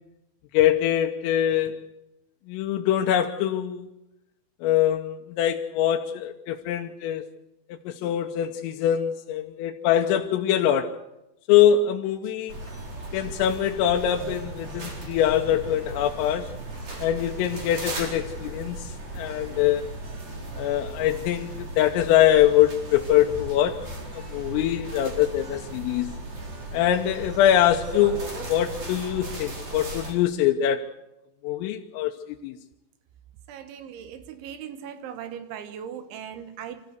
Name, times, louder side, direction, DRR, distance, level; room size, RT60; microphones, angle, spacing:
voice 1, 0.5-1.8 2.5-3.9 4.6-7.2 7.9-11.0 11.5-12.5 13.1-16.5 17.0-18.8 19.2-19.8 20.6-23.9 24.1-26.2 26.7-30.9 31.4-32.1 32.4-32.6, left 11 dB, 80° left, 3.5 m, -23 dB
sound 1, 12.5-30.1, right 1 dB, 35° right, 4.8 m, -36 dB
voice 2, 33.5-36.8, right 8 dB, 75° right, 3.4 m, -38 dB
26.5 x 14.5 x 8.1 m
omnidirectional pair, 6.0 m